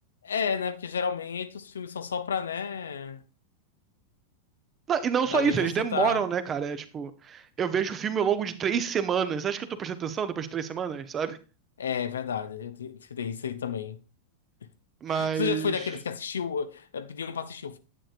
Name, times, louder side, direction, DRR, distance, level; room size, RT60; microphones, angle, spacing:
voice 1, 0.2-3.2 5.3-6.3 11.8-14.0 15.1-17.8, left 7 dB, 70° left, 0.6 m, -32 dB
voice 2, 4.9-11.4 15.0-15.7, right 7 dB, 25° right, 0.9 m, -28 dB
9.9 x 8.7 x 2.5 m
figure-of-eight pair, 90°, 0 cm